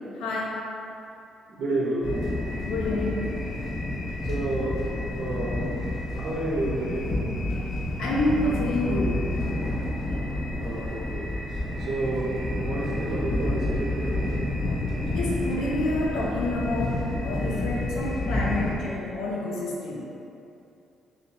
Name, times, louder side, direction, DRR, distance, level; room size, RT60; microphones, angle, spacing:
voice 1, 0.2-0.6 2.6-3.4 8.0-9.2 15.1-20.0, left 2 dB, 85° left, -4 dB, 0.8 m, -28 dB
voice 2, 1.5-2.1 4.2-4.8 5.2-5.7 6.1-7.1 10.6-14.3, right 2 dB, 80° right, -6 dB, 0.9 m, -30 dB
sound 1, 2.0-18.8, left 1 dB, 50° left, 1.1 m, -29 dB
3.1 x 3.0 x 4.2 m, 2.7 s
cardioid pair, 90°, 0 cm